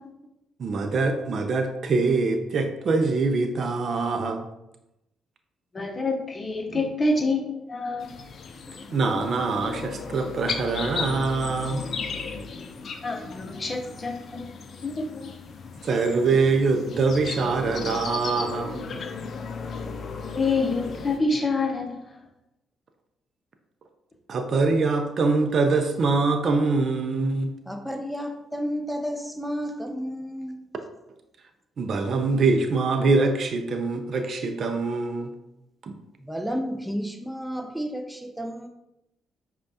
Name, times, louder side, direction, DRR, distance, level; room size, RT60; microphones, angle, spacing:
voice 1, 0.6-4.4 6.7-6.8 8.9-11.8 15.8-19.0 24.3-27.5 31.8-35.3 35.8-35.9, right 3 dB, 55° right, 0.4 m, -24 dB
voice 2, 5.7-8.2 13.0-14.4 14.7-15.3 20.3-22.0, left 3 dB, 35° left, 0.7 m, -27 dB
sound 1, 8.0-21.2, left 5 dB, 60° left, 0.4 m, -36 dB
voice 3, 27.7-30.6 36.2-38.7, equal, ahead, 0.5 m, -31 dB
5.1 x 2.3 x 2.7 m
supercardioid pair, 55°, 0 cm